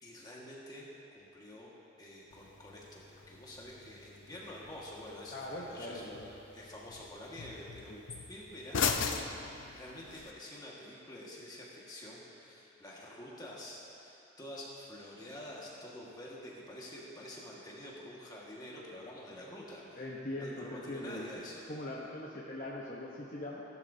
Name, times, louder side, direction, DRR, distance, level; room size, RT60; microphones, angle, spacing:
voice 1, 0.0-1.7 2.0-6.1 6.5-7.9 8.3-20.0 20.3-21.7, left 1 dB, 20° left, -5 dB, 1.7 m, -48 dB
sound 1, 2.3-10.3, left 6 dB, 70° left, 0.6 m, -40 dB
voice 2, 5.3-6.3 7.9-8.0 20.0-21.4 21.7-23.6, left 1 dB, 40° left, -5 dB, 1.0 m, -41 dB
16.0 x 12.0 x 2.8 m, 2.8 s
head